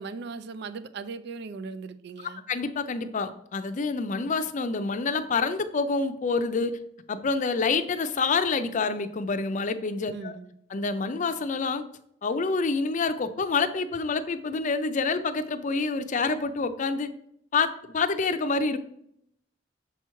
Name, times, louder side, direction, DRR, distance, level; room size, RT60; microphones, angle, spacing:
voice 1, 0.0-2.4 10.1-10.5, right 4 dB, 65° right, 0.4 m, -38 dB
voice 2, 2.5-6.8 7.1-10.3 10.7-11.8 12.2-17.1 17.5-18.8, left 4 dB, 45° left, 0.5 m, -27 dB
7.0 x 3.0 x 5.6 m
head